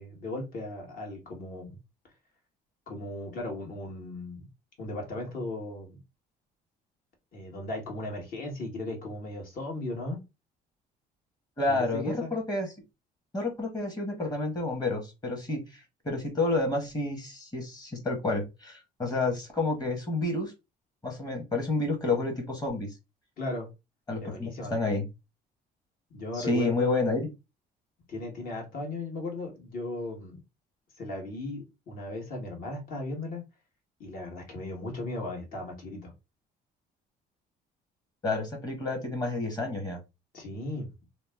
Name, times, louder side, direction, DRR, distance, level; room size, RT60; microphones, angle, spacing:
voice 1, 0.0-1.8 2.9-4.5 4.8-6.0 7.3-10.2 11.7-12.4 23.4-23.7 24.2-24.7 26.1-27.0 28.1-30.4 31.0-33.4 34.0-36.1 40.3-40.9, left 2 dB, 55° left, 1.5 m, -36 dB
voice 2, 11.6-12.7 13.3-20.5 21.0-22.9 24.1-25.1 26.3-27.3 38.2-40.0, left 2 dB, 25° left, 1.2 m, -30 dB
2.9 x 2.0 x 3.4 m
cardioid pair, 110°, 17 cm